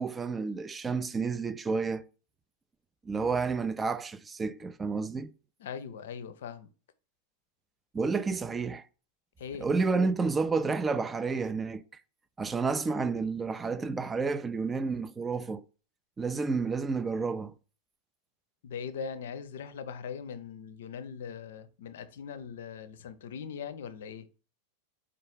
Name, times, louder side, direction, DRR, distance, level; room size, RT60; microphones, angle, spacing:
voice 1, 0.0-2.0 3.1-5.3 7.9-8.8 9.6-11.8 12.4-15.6 16.2-17.5, right 4 dB, 15° right, 0.3 m, -30 dB
voice 2, 5.6-6.7 9.4-9.7 18.6-24.3, left 6 dB, 60° left, 0.5 m, -40 dB
4.6 x 2.4 x 4.7 m
figure-of-eight pair, 90°, 0 cm